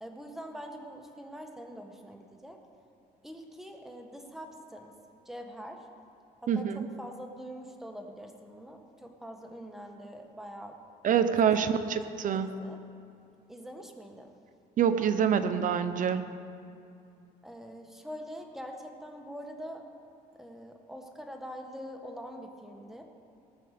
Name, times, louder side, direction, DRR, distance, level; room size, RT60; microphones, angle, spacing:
voice 1, 0.0-2.6 3.2-4.9 5.2-5.8 6.4-10.7 11.4-11.8 12.3-12.8 13.5-14.3 17.4-19.8 20.4-23.0, equal, ahead, 3 dB, 1.5 m, -44 dB
voice 2, 6.5-6.8 11.0-12.6 14.8-16.3, right 8 dB, 50° right, 10 dB, 0.8 m, -26 dB
18.5 x 6.7 x 6.7 m, 2.6 s
cardioid pair, 110°, 17 cm